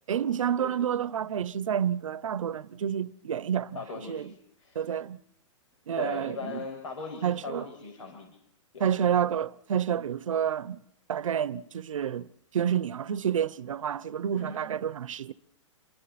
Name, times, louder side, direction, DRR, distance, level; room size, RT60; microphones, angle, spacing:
voice 1, 0.1-3.8 4.1-4.3 4.7-5.2 5.9-6.6 7.2-7.7 8.8-10.8 11.1-12.3 12.5-15.3, right 9 dB, 90° right, 1.0 m, -29 dB
voice 2, 3.7-4.9 6.0-8.3 8.7-9.1 14.3-14.7, left 4 dB, 80° left, 5.9 m, -39 dB
28.5 x 23.5 x 4.3 m
hypercardioid pair, 175°, 16 cm